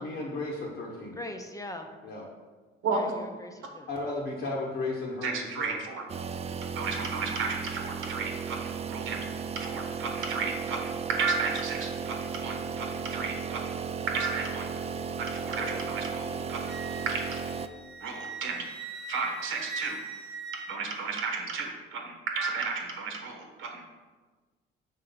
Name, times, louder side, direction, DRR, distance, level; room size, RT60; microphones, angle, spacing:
voice 1, 0.0-1.2 2.0-2.3 3.9-5.8, left 2 dB, 70° left, -3 dB, 1.0 m, -34 dB
voice 2, 1.2-1.9 2.9-4.1 15.5-15.9, left 1 dB, 15° left, 5 dB, 0.6 m, -41 dB
voice 3, 5.2-6.0 6.7-9.2 9.5-13.7 14.1-14.7 15.2-16.7 17.1-17.4 18.0-18.6 19.1-20.0 20.5-23.8, right 4 dB, 85° right, 2 dB, 1.0 m, -33 dB
sound 1, 6.1-17.7, right 6 dB, 30° right, 0.3 m, -35 dB
Wind instrument woodwind instrument, 16.7-21.3, right 4 dB, 60° right, 0.8 m, -41 dB
4.6 x 3.8 x 5.6 m, 1.4 s
cardioid pair, 90°, 20 cm